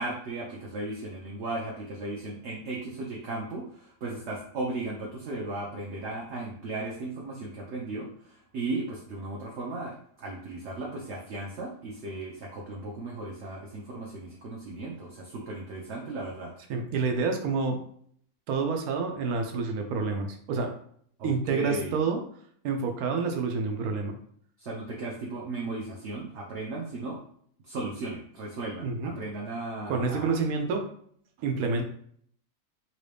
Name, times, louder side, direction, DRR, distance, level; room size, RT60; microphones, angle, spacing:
voice 1, 0.0-16.5 21.2-22.0 24.6-27.2 27.6-30.4, right 2 dB, 60° right, -2 dB, 0.8 m, -36 dB
voice 2, 16.7-17.8 18.5-20.7 21.2-22.2 22.6-24.2 28.8-29.1 29.9-30.8 31.4-31.8, right 4 dB, 75° right, 4 dB, 1.1 m, -28 dB
3.0 x 2.7 x 3.3 m, 0.62 s
omnidirectional pair, 1.6 m